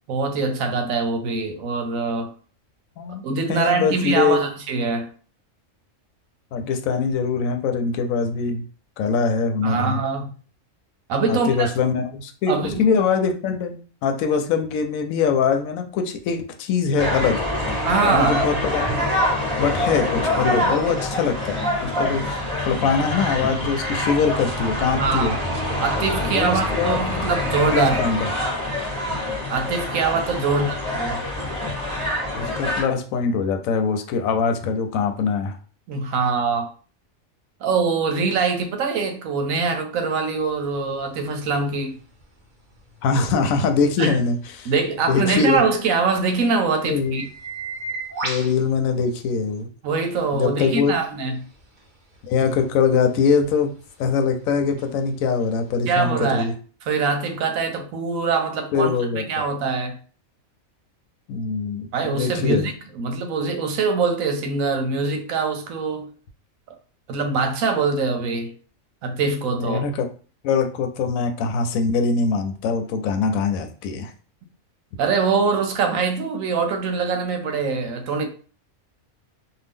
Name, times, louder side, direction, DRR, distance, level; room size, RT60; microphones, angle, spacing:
voice 1, 0.1-2.3 3.2-5.1 9.6-10.3 11.1-11.7 12.5-12.8 17.8-18.4 24.9-25.4 25.8-28.0 29.5-31.2 35.9-36.7 37.6-42.0 44.0-44.2 44.6-47.2 49.8-51.4 55.9-56.5 56.8-60.0 61.9-66.1 67.1-68.5 69.0-69.9 75.0-78.3, right 4 dB, 80° right, 1.0 m, -23 dB
voice 2, 3.5-4.5 6.5-8.6 9.0-10.0 11.3-13.8 14.0-17.4 18.0-19.1 19.6-22.4 22.6-25.3 26.2-27.0 27.7-28.3 30.5-30.7 32.4-35.6 43.0-44.7 45.1-45.6 46.8-47.3 48.2-49.7 50.3-51.0 52.2-53.7 54.0-56.5 58.7-59.2 61.3-62.6 69.5-70.1 70.4-74.1, left 5 dB, 85° left, 1.0 m, -22 dB
sound 1, 17.0-32.8, left 1 dB, 5° left, 0.9 m, -25 dB
sound 2, 40.4-49.6 50.1-56.0, right 3 dB, 40° right, 0.8 m, -39 dB
2.7 x 2.3 x 3.5 m
omnidirectional pair, 1.4 m